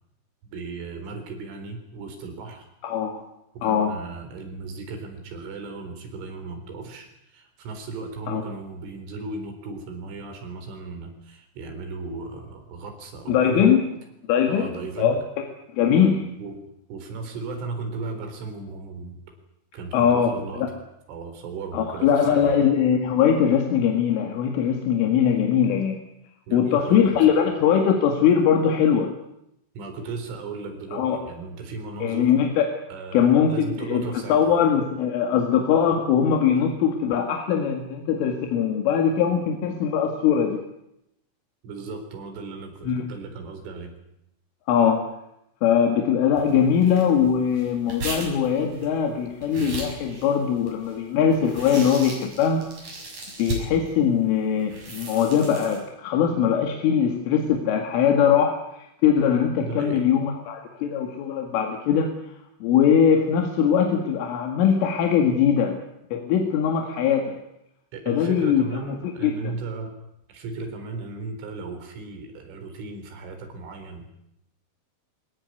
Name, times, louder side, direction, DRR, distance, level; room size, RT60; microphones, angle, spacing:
voice 1, 0.4-2.7 3.5-13.7 14.5-15.2 15.9-16.1 16.4-16.6 16.9-19.2 19.7-20.6 21.1-22.6 26.5-27.4 29.7-32.3 32.9-34.5 41.6-43.9 59.6-60.1 67.9-69.9 70.3-74.1, right 3 dB, 75° right, 5 dB, 6.5 m, -36 dB
voice 2, 2.8-3.2 3.6-4.0 8.3-8.4 13.3-13.8 14.3-14.7 15.0-15.4 15.7-16.2 19.9-20.7 21.7-26.0 26.5-29.1 30.9-31.2 32.0-32.8 33.1-34.0 34.3-40.6 42.8-43.0 44.7-45.1 45.6-52.7 53.4-62.1 62.6-65.8 66.1-67.4 68.1-68.6 69.2-69.5, left 8 dB, 80° left, 3 dB, 4.5 m, -21 dB
sound 1, 46.4-53.9 54.6-55.8, right 2 dB, 40° right, 7.6 m, -36 dB
24.0 x 18.5 x 9.6 m, 0.82 s
omnidirectional pair, 5.6 m